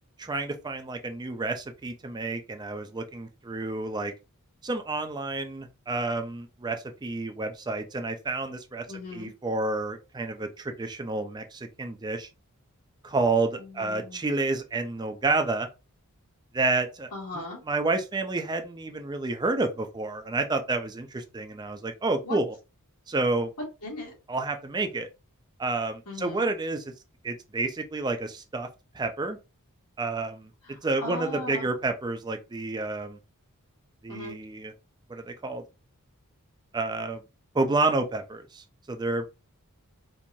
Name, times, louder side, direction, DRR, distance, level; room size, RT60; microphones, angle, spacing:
voice 1, 0.2-4.1 4.6-8.8 9.1-12.3 13.0-15.7 16.5-17.1 17.7-22.5 23.1-23.5 24.3-25.1 25.6-26.8 27.2-28.7 28.9-29.4 30.0-30.5 30.8-33.2 34.0-34.7 35.1-35.6 36.7-37.2 37.5-39.2, right 3 dB, 20° right, 0.4 m, -29 dB
voice 2, 8.9-9.3 13.6-14.2 17.1-17.6 22.2-22.4 23.8-24.1 26.1-26.5 30.6-31.7 34.1-34.4, left 2 dB, 85° left, 2.3 m, -38 dB
4.5 x 2.5 x 2.7 m
head